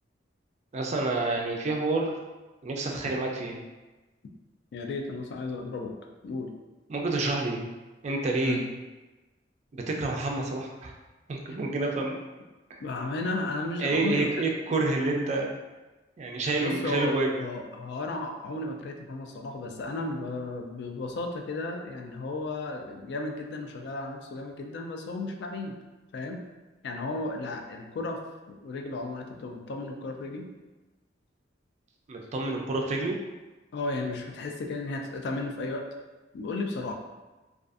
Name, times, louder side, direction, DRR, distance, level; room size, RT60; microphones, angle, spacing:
voice 1, 0.7-2.1 2.6-3.6 6.9-7.7 8.0-8.6 9.7-10.9 11.3-12.1 12.7-12.8 13.8-15.5 16.2-17.3 32.1-33.2, right 2 dB, 35° right, 0 dB, 0.3 m, -28 dB
voice 2, 4.7-5.9 6.2-6.5 8.4-8.6 12.8-14.4 16.6-17.1 17.4-25.7 26.1-26.4 26.8-28.2 28.5-30.5 33.7-35.8 36.3-36.9, left 2 dB, 60° left, 3 dB, 0.3 m, -34 dB
2.5 x 2.3 x 2.4 m, 1.2 s
head